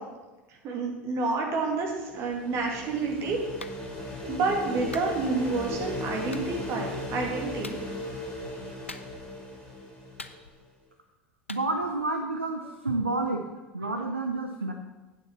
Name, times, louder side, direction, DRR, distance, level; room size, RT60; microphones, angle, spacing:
voice 1, 0.6-3.4 4.3-7.8, right 3 dB, 45° right, 1 dB, 2.3 m, -29 dB
sound 1, 1.7-10.5, left 1 dB, 10° left, 2.8 m, -37 dB
Clapping, 3.6-3.8 4.9-5.1 6.3-6.5 7.6-7.8 8.9-9.3 10.2-10.7 11.5-11.7, left 3 dB, 90° left, 0.5 m, -42 dB
voice 2, 11.5-13.4 13.7-14.7, right 2 dB, 90° right, 4 dB, 0.7 m, -29 dB
8.8 x 7.0 x 6.0 m, 1.2 s
figure-of-eight pair, 75°, 6 cm